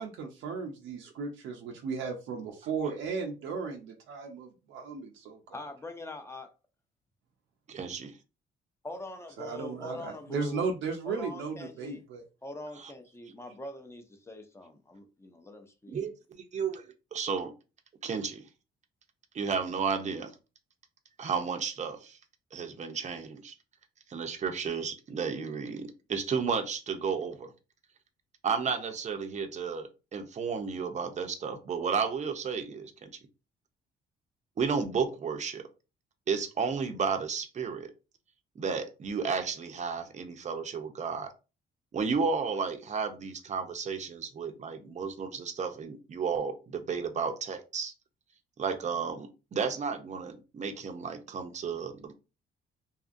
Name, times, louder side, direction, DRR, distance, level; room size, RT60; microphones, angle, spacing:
voice 1, 0.0-5.4 9.4-12.2, right 5 dB, 80° right, 0.6 m, -35 dB
voice 2, 5.5-6.5 8.8-10.6 11.1-12.1 12.4-16.0, left 2 dB, 15° left, 0.6 m, -43 dB
voice 3, 7.7-8.1 15.9-16.1 16.5-16.8 17.1-17.5 18.0-18.4 19.3-20.3 21.2-22.2 22.5-23.5 24.1-27.5 28.4-33.1 34.6-35.7 36.3-37.9 38.6-41.3 41.9-47.9 48.6-52.1, right 5 dB, 35° right, 0.6 m, -32 dB
2.7 x 2.4 x 2.5 m
cardioid pair, 90°, 20 cm